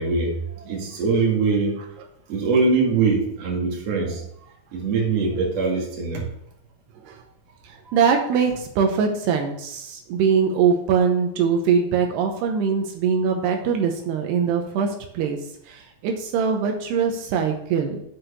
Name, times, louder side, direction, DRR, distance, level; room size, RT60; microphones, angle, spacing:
voice 1, 0.0-1.8 2.3-4.2 4.7-6.3 7.9-8.0, right 4 dB, 45° right, -2 dB, 2.8 m, -22 dB
voice 2, 6.9-7.2 7.6-18.0, right 6 dB, 80° right, 3 dB, 3.0 m, -22 dB
7.6 x 5.9 x 6.7 m, 0.74 s
omnidirectional pair, 4.8 m